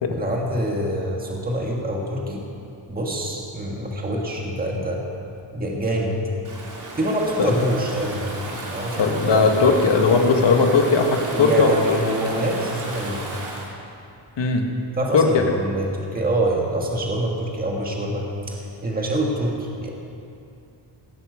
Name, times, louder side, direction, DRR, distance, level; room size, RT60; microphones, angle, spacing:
voice 1, 0.1-2.4 2.9-5.0 5.5-6.1 6.9-9.5 11.3-13.2 15.0-19.6 19.8-19.9, right 1 dB, 20° right, -1 dB, 1.6 m, -25 dB
Stream / Ocean, 6.4-13.7, right 2 dB, 40° right, 2.8 m, -34 dB
voice 2, 9.0-12.0 14.4-14.7 15.1-15.6, left 4 dB, 65° left, 2 dB, 1.8 m, -18 dB
17.5 x 15.0 x 5.1 m, 2.7 s
wide cardioid pair, 180°, 46 cm